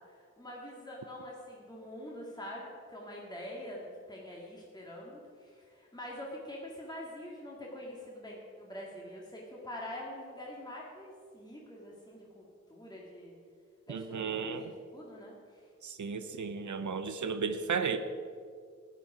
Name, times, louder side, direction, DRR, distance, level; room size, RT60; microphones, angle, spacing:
voice 1, 0.1-12.4 12.7-13.3 13.9-15.6, left 1 dB, 15° left, -4 dB, 2.1 m, -45 dB
voice 2, 13.9-14.7 15.8-18.0, right 5 dB, 75° right, 9 dB, 0.8 m, -34 dB
13.0 x 9.3 x 5.0 m, 2.2 s
wide cardioid pair, 70°, 30 cm